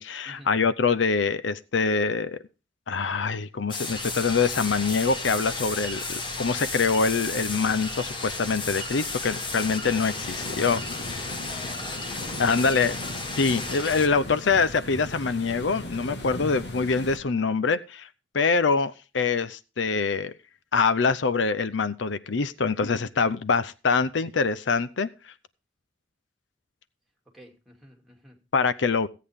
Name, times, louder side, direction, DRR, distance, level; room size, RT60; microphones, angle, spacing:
voice 1, 0.0-2.4 2.9-11.2 12.4-12.9 13.4-18.1 18.3-20.3 20.7-25.3 28.5-29.1, left 4 dB, 80° left, 15 dB, 0.6 m, -25 dB
sound 1, 3.7-14.1, left 3 dB, 25° left, 1.3 m, -34 dB
sound 2, 3.9-17.2, left 1 dB, 65° left, 1.7 m, -39 dB
voice 2, 11.5-12.8 27.3-28.4, equal, ahead, -1 dB, 2.6 m, -49 dB
16.5 x 8.4 x 3.6 m, 0.32 s
head